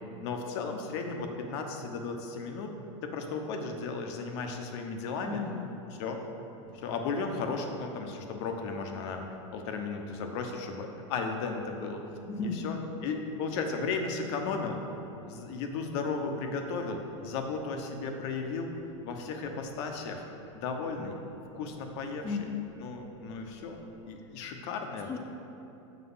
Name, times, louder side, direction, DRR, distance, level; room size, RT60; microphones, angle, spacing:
voice 1, 0.2-2.7 3.0-5.4 5.9-6.2 6.7-9.3 9.5-12.0 12.4-14.8 15.2-18.7 19.0-20.3 20.5-21.2 21.5-22.5 22.8-23.8 24.0-25.2, left 4 dB, 60° left, 4 dB, 0.9 m, -35 dB
voice 2, 5.2-5.8 12.3-12.8 22.2-22.6 25.1-25.2, left 5 dB, 15° left, 2 dB, 0.4 m, -34 dB
sound 1, 6.6-24.1, right 6 dB, 25° right, 1.5 m, -59 dB
7.3 x 4.0 x 5.6 m, 3.0 s
hypercardioid pair, 120°, 16 cm